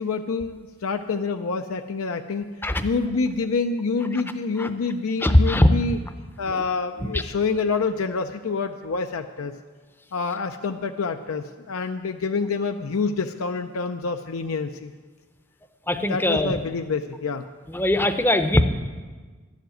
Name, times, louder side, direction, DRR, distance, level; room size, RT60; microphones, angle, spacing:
voice 1, 0.0-2.5 2.8-6.0 6.4-9.6 10.1-14.9 16.1-17.4, left 4 dB, 80° left, 6 dB, 0.5 m, -27 dB
voice 2, 5.2-5.7 6.5-6.6 7.0-7.2 15.9-16.6 17.7-18.6, left 1 dB, 10° left, 9 dB, 0.6 m, -20 dB
12.0 x 7.3 x 9.1 m, 1.4 s
head